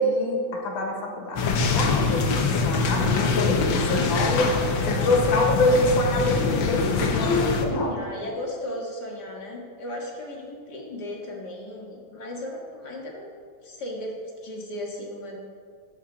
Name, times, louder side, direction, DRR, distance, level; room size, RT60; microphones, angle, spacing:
voice 1, 0.0-4.5 4.9-7.9, left 1 dB, 90° left, 0 dB, 3.1 m, -25 dB
sound 1, 1.4-7.7, left 4 dB, 70° left, 1.1 m, -24 dB
voice 2, 4.8-5.1 7.7-13.3 13.6-15.5, left 1 dB, 40° left, -2 dB, 2.0 m, -36 dB
19.0 x 7.3 x 3.9 m, 2.1 s
omnidirectional pair, 3.4 m